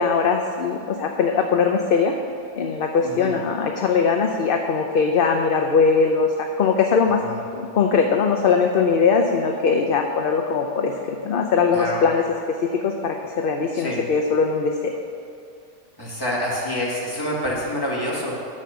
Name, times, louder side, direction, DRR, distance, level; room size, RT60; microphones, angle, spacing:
voice 1, 0.0-2.2 2.6-7.2 7.5-14.9, left 5 dB, 55° left, 3 dB, 0.7 m, -21 dB
voice 2, 11.7-12.0 13.7-14.0 16.0-18.3, left 1 dB, 20° left, -5 dB, 2.1 m, -27 dB
10.0 x 6.4 x 6.9 m, 2.5 s
omnidirectional pair, 1.3 m